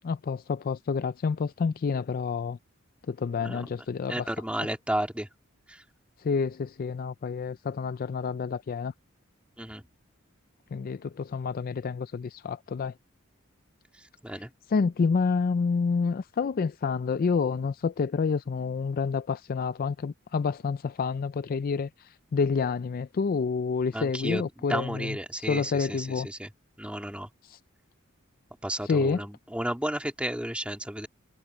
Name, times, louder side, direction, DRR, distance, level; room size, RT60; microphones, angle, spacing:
voice 1, 0.0-2.6 3.1-4.3 6.2-8.9 10.7-12.9 14.7-26.3 27.5-27.6 28.8-29.2, left 5 dB, 45° left, 0.4 m, -28 dB
voice 2, 4.1-5.3 5.7-5.8 9.6-9.8 13.9-14.5 23.9-26.5 26.8-27.3 28.6-31.1, right 1 dB, 5° right, 2.7 m, -33 dB
head